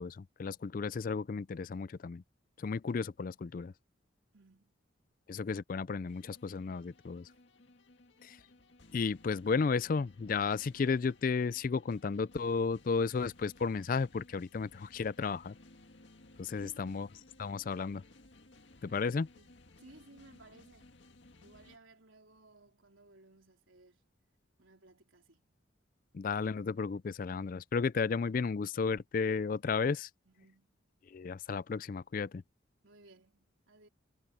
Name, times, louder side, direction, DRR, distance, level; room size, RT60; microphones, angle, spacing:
voice 1, 0.0-2.2 2.6-3.7 5.3-7.3 8.2-8.4 8.9-15.5 16.4-17.1 17.4-18.0 18.8-19.3 26.1-30.1 31.1-32.4, left 5 dB, 45° left, 0.4 m, -33 dB
voice 2, 4.3-4.8 7.3-7.4 16.6-17.2 18.8-21.0 21.4-24.1 24.6-25.6 30.3-30.8 32.8-33.9, right 2 dB, 85° right, 4.1 m, -60 dB
sound 1, 6.1-21.8, left 2 dB, 65° left, 2.0 m, -60 dB
head